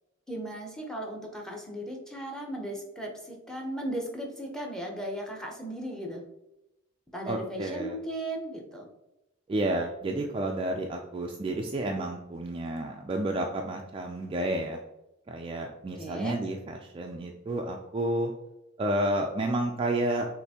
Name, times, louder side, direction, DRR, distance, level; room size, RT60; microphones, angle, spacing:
voice 1, 0.3-6.2 7.1-8.9 16.0-16.3, right 1 dB, 5° left, 1 dB, 0.7 m, -36 dB
voice 2, 7.3-8.0 9.5-14.8 15.3-18.3 18.8-20.3, right 1 dB, 25° right, 2 dB, 0.3 m, -30 dB
6.5 x 2.6 x 2.8 m, 0.93 s
head